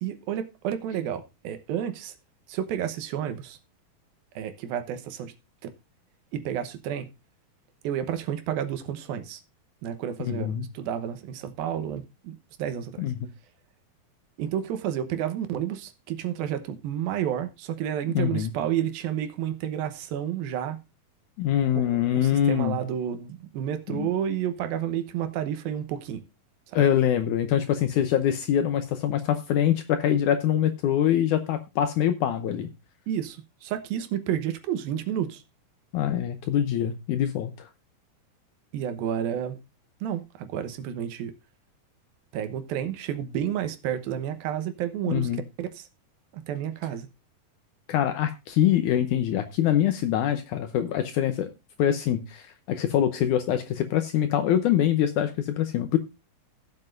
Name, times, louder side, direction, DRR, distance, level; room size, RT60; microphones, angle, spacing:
voice 1, 0.0-2.1 2.5-3.6 4.4-5.3 6.3-7.1 7.8-9.4 9.8-13.0 14.4-20.8 21.8-26.2 26.7-26.8 33.1-35.4 38.7-39.6 40.0-41.3 42.3-45.3 45.6-45.9 46.3-47.1, right 10 dB, 80° right, 2.8 m, -31 dB
voice 2, 10.2-10.7 13.0-13.2 18.2-18.5 21.4-22.8 23.9-24.1 26.7-32.7 35.9-37.7 45.1-45.4 47.9-51.5 51.8-56.0, left 10 dB, 75° left, 1.9 m, -24 dB
16.5 x 7.7 x 2.6 m
omnidirectional pair, 4.2 m